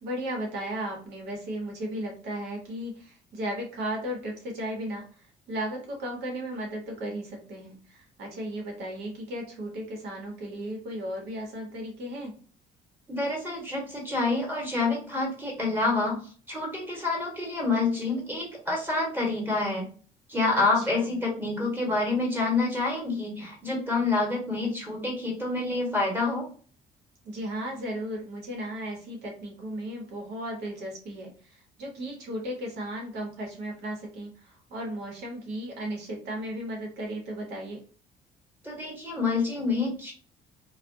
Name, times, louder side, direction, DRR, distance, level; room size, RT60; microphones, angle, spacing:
voice 1, 0.0-12.3 20.5-21.2 27.2-37.8, right 1 dB, 80° right, 1 dB, 1.1 m, -35 dB
voice 2, 13.1-16.2 16.5-19.8 20.3-26.4 38.6-40.1, left 3 dB, 10° right, -3 dB, 1.2 m, -27 dB
2.4 x 2.3 x 2.6 m, 0.41 s
cardioid pair, 110°, 17 cm